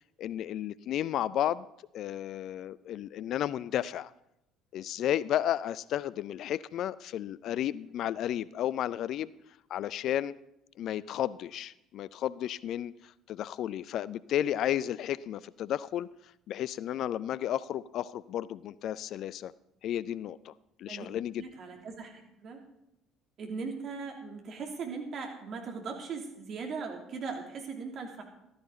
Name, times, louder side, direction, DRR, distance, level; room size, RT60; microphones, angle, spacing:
voice 1, 0.2-1.7 1.9-4.1 4.7-9.3 9.7-10.4 10.8-16.1 16.5-19.5 19.8-20.5 20.8-21.4, left 11 dB, 55° left, 20 dB, 0.4 m, -33 dB
voice 2, 21.4-22.6 23.4-28.2, right 5 dB, 50° right, 2 dB, 2.8 m, -39 dB
14.5 x 13.0 x 3.9 m, 0.84 s
figure-of-eight pair, 55°, 0 cm